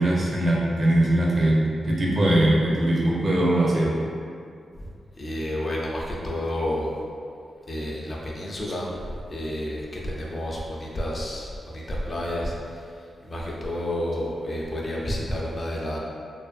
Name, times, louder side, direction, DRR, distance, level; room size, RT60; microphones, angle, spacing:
voice 1, 0.0-1.6 1.8-3.9, right 1 dB, 35° right, -4 dB, 0.4 m, -21 dB
voice 2, 5.2-6.9 7.7-16.0, left 1 dB, 35° left, -3 dB, 0.3 m, -30 dB
2.5 x 2.4 x 2.3 m, 2.4 s
wide cardioid pair, 130°, 0 cm